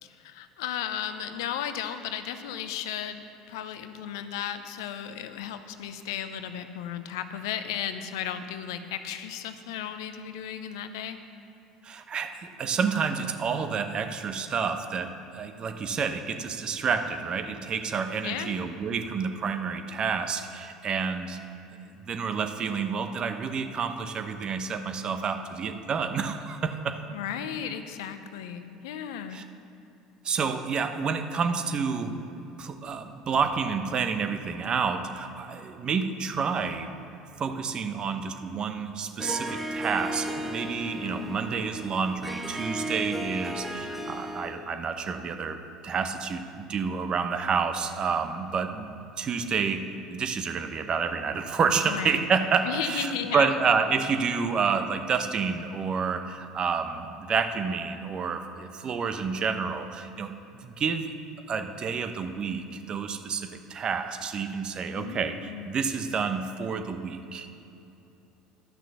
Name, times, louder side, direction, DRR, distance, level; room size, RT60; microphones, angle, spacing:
voice 1, 0.0-11.2 18.2-18.6 27.1-29.4 41.0-41.5 51.8-52.2 52.6-53.5 64.9-65.7, left 9 dB, 75° left, 10 dB, 0.6 m, -35 dB
voice 2, 11.8-21.4 22.0-27.0 29.3-29.4 30.2-32.2 32.6-36.9 37.4-48.9 49.2-61.1 61.5-67.5, right 5 dB, 40° right, 8 dB, 0.9 m, -29 dB
Harp, 39.2-44.7, right 1 dB, 5° right, 1.3 m, -34 dB
11.5 x 6.1 x 7.0 m, 2.9 s
hypercardioid pair, 70°, 2 cm